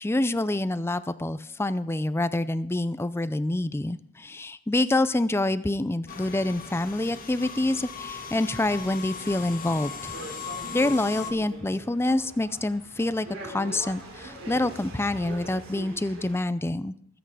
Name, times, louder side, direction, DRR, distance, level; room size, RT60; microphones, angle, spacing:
voice 1, 0.0-10.1 10.7-16.9, left 2 dB, 10° left, 14 dB, 0.4 m, -27 dB
sound 1, 6.1-11.3, left 5 dB, 45° left, 1.7 m, -38 dB
sound 2, 9.9-16.4, right 1 dB, 65° right, 4.1 m, -42 dB
22.5 x 8.1 x 4.9 m, 0.73 s
head